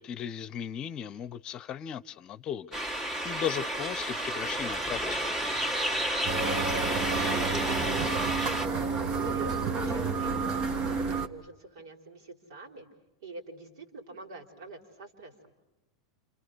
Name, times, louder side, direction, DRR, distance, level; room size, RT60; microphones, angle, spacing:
voice 1, 0.0-5.2, left 9 dB, 35° left, 0.9 m, -36 dB
sound 1, 2.7-8.7, right 1 dB, 20° right, 2.4 m, -31 dB
sound 2, 6.2-11.3, right 4 dB, 40° right, 1.8 m, -30 dB
voice 2, 6.4-8.9 9.2-12.9 13.2-15.6, right 3 dB, 65° right, 4.9 m, -45 dB
29.5 x 28.5 x 6.4 m
figure-of-eight pair, 90°, 2 cm